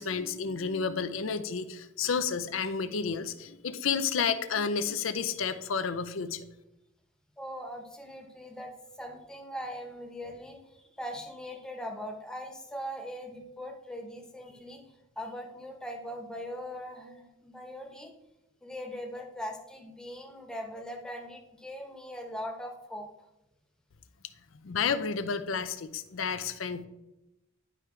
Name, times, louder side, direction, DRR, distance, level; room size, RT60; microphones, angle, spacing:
voice 1, 0.0-6.4 24.6-26.9, left 6 dB, 75° left, 10 dB, 0.6 m, -31 dB
voice 2, 7.4-14.8 15.2-18.1 18.6-23.1, equal, 5° left, 1 dB, 1.1 m, -40 dB
11.0 x 4.8 x 3.3 m, 0.92 s
head